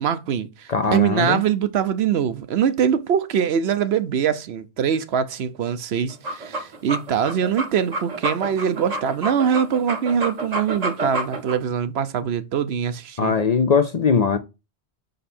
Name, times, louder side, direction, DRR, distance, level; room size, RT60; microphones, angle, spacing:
voice 1, 0.0-13.4, right 8 dB, 70° right, 0.9 m, -23 dB
voice 2, 0.7-1.4 13.2-14.4, left 5 dB, 50° left, 0.5 m, -20 dB
sound 1, 6.1-11.6, right 2 dB, 40° right, 0.9 m, -29 dB
5.6 x 5.3 x 4.2 m
omnidirectional pair, 1.1 m